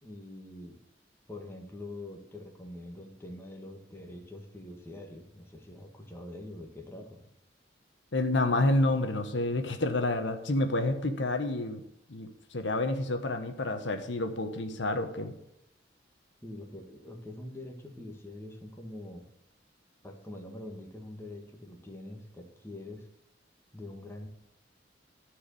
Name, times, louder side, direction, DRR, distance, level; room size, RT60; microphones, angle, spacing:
voice 1, 0.0-0.8 1.3-7.2 16.4-19.2 20.0-23.0 23.7-24.3, left 1 dB, 15° left, 2 dB, 1.6 m, -44 dB
voice 2, 8.1-11.8 12.1-15.3, left 2 dB, 75° left, 7 dB, 1.2 m, -29 dB
13.5 x 4.7 x 8.4 m, 0.82 s
head